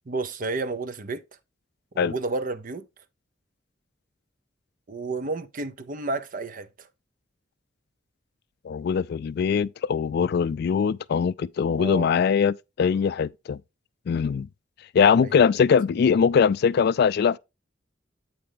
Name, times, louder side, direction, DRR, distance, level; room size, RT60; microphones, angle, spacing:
voice 1, 0.1-1.2 1.9-2.9 4.9-6.9 11.8-12.1 15.2-15.3, right 3 dB, 45° right, 0.7 m, -31 dB
voice 2, 8.6-13.6 14.1-14.5 14.9-17.4, left 6 dB, 55° left, 0.3 m, -22 dB
8.6 x 4.4 x 3.9 m
head